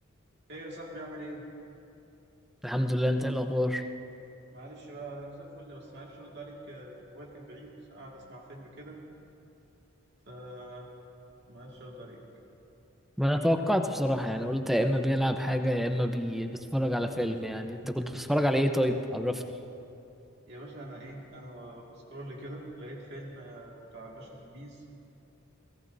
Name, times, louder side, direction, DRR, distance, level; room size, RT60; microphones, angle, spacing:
voice 1, 0.5-1.4 4.5-9.0 10.3-10.9 11.5-12.2 20.5-24.8, right 1 dB, 55° right, -3 dB, 2.2 m, -44 dB
voice 2, 2.6-3.8 13.2-19.4, equal, ahead, 5 dB, 0.7 m, -27 dB
30.0 x 17.5 x 2.7 m, 2.8 s
head